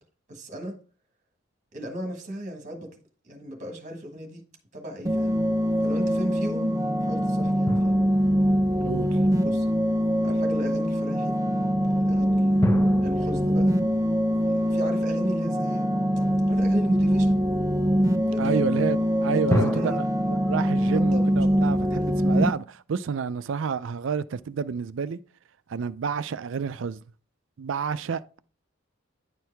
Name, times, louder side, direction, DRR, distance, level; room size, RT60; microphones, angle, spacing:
voice 1, 0.3-0.8 1.7-2.9 3.2-4.4 4.7-5.4 5.8-7.9 9.4-9.7 10.2-11.4 12.0-13.7 14.5-15.9 16.5-17.4 18.3-18.6 19.3-20.0 20.8-21.6 21.9-22.1, right 1 dB, 40° right, 1.5 m, -35 dB
sound 1, 5.0-22.5, equal, 20° right, 0.5 m, -23 dB
sound 2, 7.7-9.6 12.6-15.9 19.5-20.0, left 1 dB, 15° left, 0.9 m, -31 dB
voice 2, 18.4-25.2 25.7-27.0 27.6-28.4, right 6 dB, 70° right, 0.4 m, -29 dB
9.7 x 4.6 x 3.4 m
head